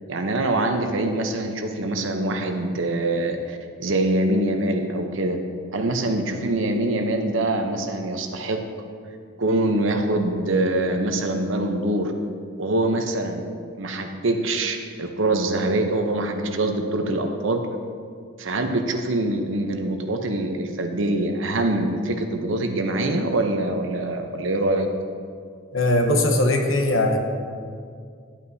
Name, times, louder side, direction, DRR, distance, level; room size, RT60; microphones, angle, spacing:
voice 1, 0.1-5.4 5.7-8.6 9.4-12.1 12.6-13.5 13.8-17.7 18.4-24.9, right 2 dB, 70° right, 5 dB, 0.8 m, -24 dB
voice 2, 25.7-27.2, left 1 dB, 70° left, 3 dB, 1.0 m, -20 dB
11.0 x 8.4 x 2.7 m, 2.2 s
head